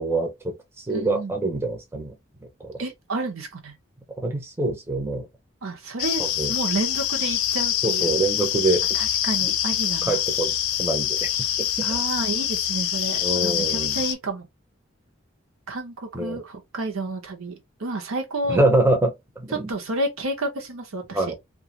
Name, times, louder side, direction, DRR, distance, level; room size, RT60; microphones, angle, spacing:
voice 1, 0.0-2.1 2.6-2.7 4.2-5.3 6.2-6.5 7.8-8.8 10.1-10.5 10.8-11.5 11.8-11.9 13.2-14.0 16.1-16.4 18.5-19.7 21.1-21.3, right 2 dB, 10° right, 0.5 m, -25 dB
voice 2, 0.9-1.3 2.8-3.7 5.6-8.1 8.9-10.2 11.8-14.5 15.7-18.6 19.5-21.3, right 2 dB, 85° right, 0.8 m, -30 dB
sound 1, 6.0-14.1, left 11 dB, 80° left, 0.4 m, -25 dB
2.4 x 2.4 x 2.9 m
head